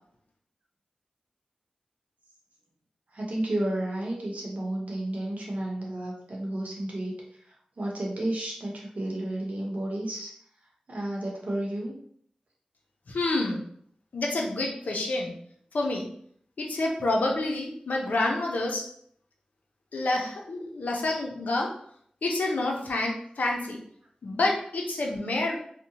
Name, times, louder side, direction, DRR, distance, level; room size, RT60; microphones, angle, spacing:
voice 1, 3.1-7.1 7.4-10.3 10.9-12.0, right 1 dB, 65° right, -2 dB, 0.8 m, -32 dB
voice 2, 13.1-13.6 14.1-15.3 15.7-16.0 16.6-18.8 19.9-21.7 22.2-23.8 24.2-25.6, left 2 dB, 85° left, 0 dB, 0.5 m, -28 dB
2.7 x 2.1 x 2.7 m, 0.64 s
cardioid pair, 45°, 3 cm